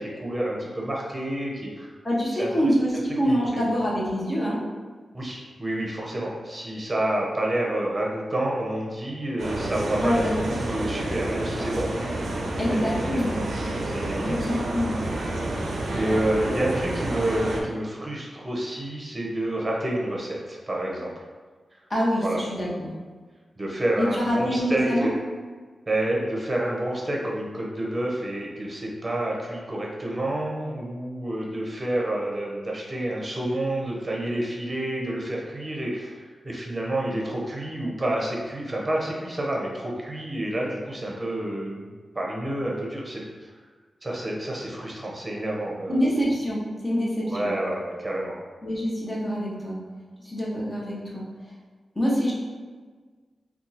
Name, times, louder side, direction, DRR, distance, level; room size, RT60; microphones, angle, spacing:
voice 1, 0.0-1.9 2.3-2.5 3.3-3.6 5.1-12.4 12.7-13.5 13.8-14.5 15.9-21.1 21.7-21.8 22.2-22.4 23.6-25.1 25.9-43.5 44.0-46.0 47.2-48.3, right 1 dB, 25° right, -2 dB, 0.8 m, -29 dB
voice 2, 2.0-4.6 9.9-10.4 12.6-13.3 14.3-15.0 21.9-22.9 24.0-25.1 45.9-47.5 48.6-49.8 50.2-51.2 52.0-52.3, equal, 25° left, -5 dB, 0.9 m, -25 dB
sound 1, 9.4-17.6, right 1 dB, 80° right, 0.5 m, -29 dB
2.8 x 2.3 x 4.0 m, 1.4 s
cardioid pair, 70°, 0 cm